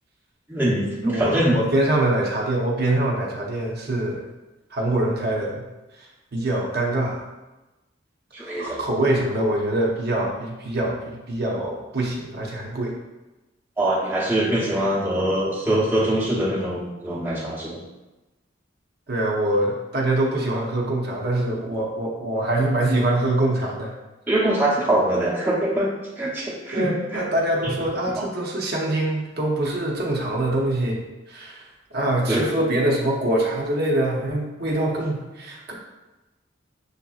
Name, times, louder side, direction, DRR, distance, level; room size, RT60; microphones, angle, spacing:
voice 1, 0.5-1.7 8.3-8.8 13.8-17.8 24.3-25.9 26.2-27.2 27.6-27.7 28.2-28.3 32.3-32.5, right 1 dB, 10° right, -6 dB, 0.8 m, -23 dB
voice 2, 1.0-4.2 4.7-5.6 6.0-7.2 8.4-12.9 19.1-23.9 26.7-31.0 31.3-31.6 31.9-35.7, right 1 dB, 55° right, -2 dB, 0.7 m, -24 dB
6.6 x 2.7 x 2.4 m, 1.1 s
head